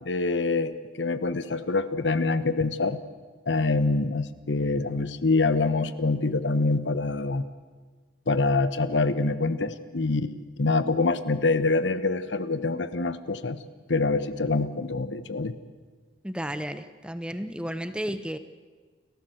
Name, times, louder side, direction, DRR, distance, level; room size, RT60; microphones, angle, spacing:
voice 1, 0.0-3.0 3.5-7.4 8.3-13.6 13.9-15.5, left 3 dB, 90° left, 13 dB, 1.1 m, -25 dB
voice 2, 16.2-18.4, equal, 5° right, 11 dB, 0.9 m, -33 dB
29.5 x 14.5 x 7.9 m, 1.4 s
head